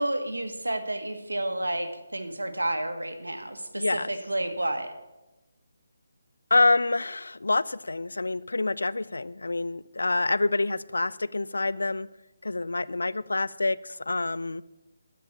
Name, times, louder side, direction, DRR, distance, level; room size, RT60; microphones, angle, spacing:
voice 1, 0.0-4.9, right 1 dB, 90° right, 7 dB, 1.5 m, -30 dB
voice 2, 3.7-4.1 6.5-12.1 12.4-14.6, left 2 dB, 80° left, 18 dB, 0.4 m, -27 dB
12.0 x 5.6 x 7.3 m, 1.0 s
figure-of-eight pair, 150°, 0 cm